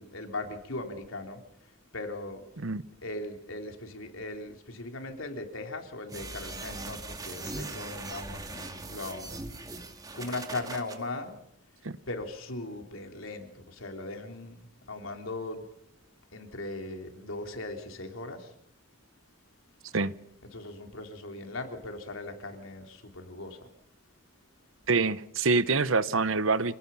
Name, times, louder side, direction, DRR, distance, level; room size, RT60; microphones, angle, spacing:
voice 1, 0.0-1.4 1.9-2.4 3.0-9.3 10.1-11.4 12.1-14.6 14.9-15.6 16.3-18.5 20.5-23.6, left 2 dB, 80° left, 5 dB, 3.4 m, -38 dB
sound 1, 6.1-11.0, right 2 dB, 20° right, 2.0 m, -40 dB
voice 2, 24.9-26.8, right 4 dB, 80° right, 15 dB, 1.0 m, -26 dB
27.0 x 18.5 x 5.7 m, 0.76 s
head